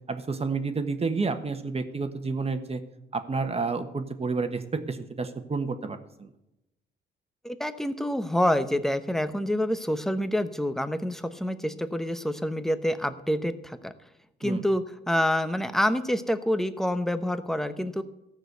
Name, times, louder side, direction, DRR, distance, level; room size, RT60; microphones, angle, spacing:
voice 1, 0.1-2.8 3.1-6.3 14.4-14.6, right 4 dB, 30° right, 8 dB, 1.3 m, -30 dB
voice 2, 7.4-13.9 14.4-18.0, equal, ahead, 10 dB, 0.9 m, -27 dB
14.0 x 6.4 x 8.0 m, 0.89 s
cardioid pair, 90°, 20 cm